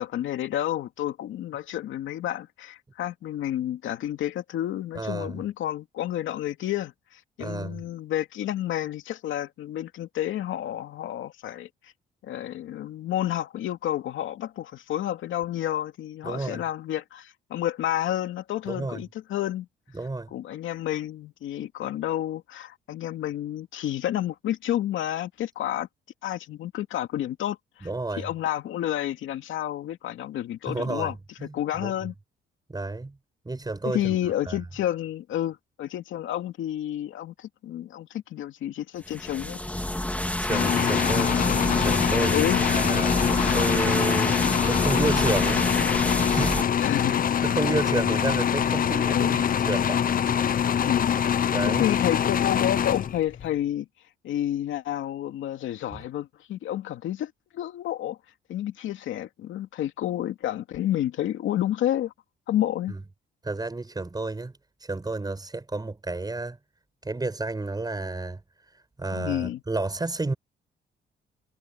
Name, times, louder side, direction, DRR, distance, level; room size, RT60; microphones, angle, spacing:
voice 1, 0.0-11.9 12.2-19.7 20.3-25.9 26.2-27.9 28.2-31.1 31.4-32.1 33.8-39.6 42.3-42.6 46.8-47.3 49.1-49.4 50.8-51.2 51.7-53.9 54.2-58.2 58.5-62.1 62.5-63.0 69.1-69.6, left 12 dB, 80° left, 2.6 m, -30 dB
voice 2, 4.9-5.4 7.4-7.8 16.2-16.6 18.7-19.0 19.9-20.3 27.8-28.3 30.7-31.1 31.4-31.9 32.7-33.2 33.5-34.1 34.5-34.6 40.4-41.4 41.8-42.4 42.7-43.2 43.5-45.7 46.3-46.8 47.4-50.2 51.5-51.9 55.9-56.0 62.9-63.0 63.4-66.6 67.0-68.4 69.0-70.3, right 3 dB, 20° right, 6.8 m, -31 dB
sound 1, 39.1-46.6, left 1 dB, 5° left, 2.5 m, -27 dB
sound 2, 40.5-53.5, left 8 dB, 45° left, 0.8 m, -24 dB
cardioid pair, 90°, 20 cm